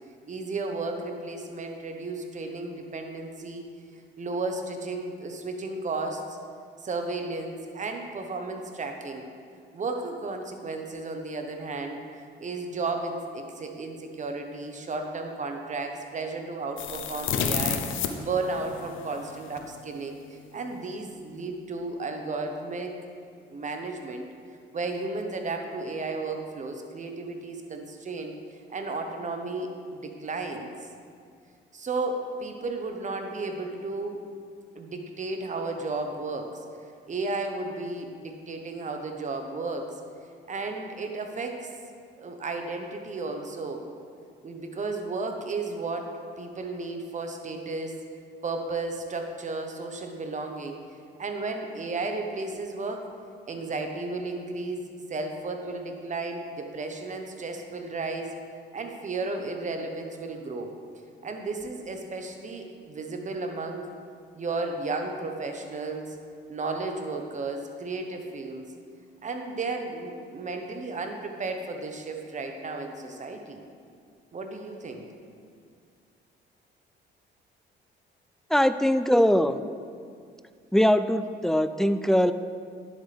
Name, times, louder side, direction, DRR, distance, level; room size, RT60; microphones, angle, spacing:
voice 1, 0.3-3.7 4.2-6.4 6.8-9.3 9.7-22.9 23.4-24.3 24.7-28.4 28.7-30.7 31.7-34.2 34.7-36.6 37.1-39.9 40.5-41.7 42.2-43.9 44.4-48.0 48.4-50.8 51.2-53.0 53.5-58.3 58.7-60.7 61.2-63.9 64.3-66.2 66.5-68.7 69.2-73.6 74.3-75.1, right 3 dB, 40° right, 4 dB, 1.1 m, -33 dB
sound 1, 16.8-19.7, left 7 dB, 85° left, 0.7 m, -31 dB
voice 2, 78.5-79.6 80.7-82.3, equal, ahead, 11 dB, 0.3 m, -21 dB
10.5 x 7.6 x 3.5 m, 2.2 s
cardioid pair, 90°, 20 cm